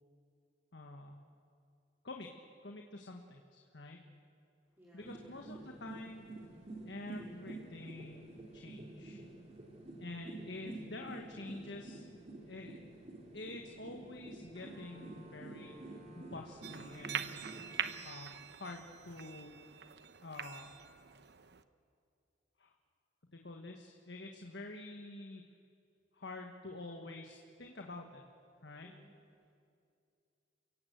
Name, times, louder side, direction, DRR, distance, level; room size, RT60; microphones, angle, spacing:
voice 1, 0.7-1.1 2.0-2.3 2.6-4.0 4.9-6.2 6.9-9.2 10.0-12.0 12.5-12.8 13.3-17.5 18.0-19.6 20.2-20.7 22.6-22.7 23.3-25.4 26.1-28.2 28.6-28.9, left 2 dB, 70° left, 2 dB, 1.5 m, -48 dB
voice 2, 4.7-5.5 28.8-29.1, equal, 15° right, -7 dB, 3.4 m, -62 dB
sound 1, 5.0-17.9, right 2 dB, 35° right, 3.0 m, -49 dB
sound 2, 16.6-21.6, right 8 dB, 65° right, 0.9 m, -43 dB
29.5 x 17.0 x 8.1 m, 2.4 s
head